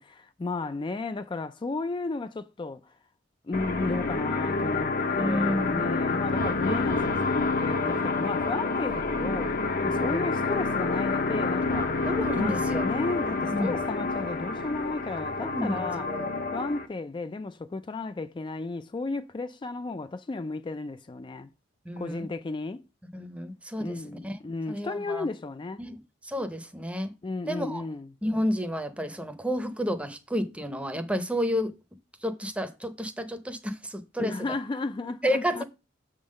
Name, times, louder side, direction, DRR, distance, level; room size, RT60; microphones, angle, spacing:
voice 1, 0.0-2.9 3.5-12.0 12.3-16.1 16.5-21.5 22.0-22.8 23.8-25.8 27.2-28.1 34.2-35.6, left 3 dB, 25° left, 0.3 m, -34 dB
sound 1, 3.5-16.9, left 3 dB, 50° left, 0.8 m, -28 dB
voice 2, 5.2-5.8 9.9-10.2 12.1-12.9 13.5-13.8 15.4-15.8 16.1-16.3 21.8-22.3 23.1-24.4 24.7-25.3 25.8-27.1 27.5-27.8 28.2-31.7 32.2-34.6 35.2-35.6, equal, 5° right, 0.7 m, -31 dB
6.9 x 3.7 x 6.4 m
head